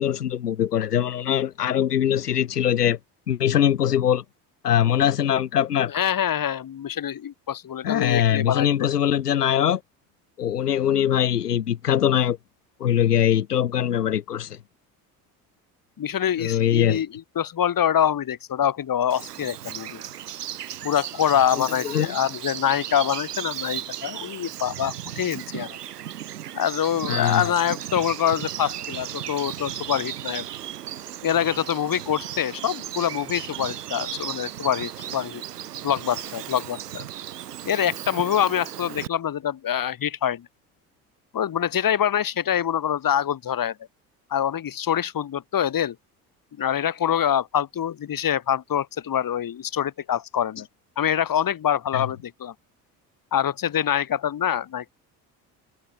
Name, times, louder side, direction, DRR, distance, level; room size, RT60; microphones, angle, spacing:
voice 1, 0.0-3.0 3.3-4.2 4.6-5.9 7.8-9.8 10.4-12.4 12.8-14.6 16.4-17.0 21.8-22.1 27.1-27.5 51.9-52.0, left 10 dB, 90° left, 2.6 m, -22 dB
voice 2, 5.9-8.7 16.0-17.1 17.4-20.0 20.8-25.8 26.5-30.5 31.2-35.4 35.8-37.0 37.7-40.5 41.3-43.8 44.3-46.0 46.6-50.7 51.0-52.5 53.3-54.9, left 9 dB, 45° left, 5.3 m, -25 dB
Bird vocalization bird call bird song, 19.1-39.1, right 11 dB, 85° right, 6.6 m, -35 dB
hypercardioid pair, 60°, 46 cm